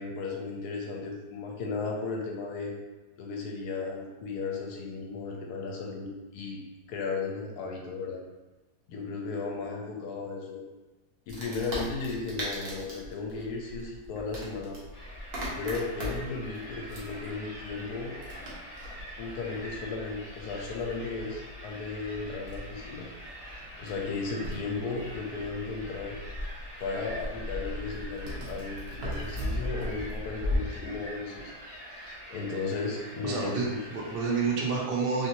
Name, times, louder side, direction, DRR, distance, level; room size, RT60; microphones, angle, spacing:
voice 1, 0.0-2.7 3.2-6.6 6.9-8.2 8.9-10.6 11.3-14.8 15.6-18.2 19.2-23.1 23.8-26.2 26.8-31.5 32.3-33.8, left 4 dB, 80° left, 0 dB, 1.1 m, -35 dB
Wood, 11.3-30.6, left 1 dB, 50° right, 0.9 m, -39 dB
sound 1, 14.9-34.5, equal, 55° left, 1.1 m, -45 dB
voice 2, 33.2-35.3, right 4 dB, 80° right, -3 dB, 0.5 m, -29 dB
3.1 x 2.9 x 2.7 m, 1.1 s
omnidirectional pair, 1.7 m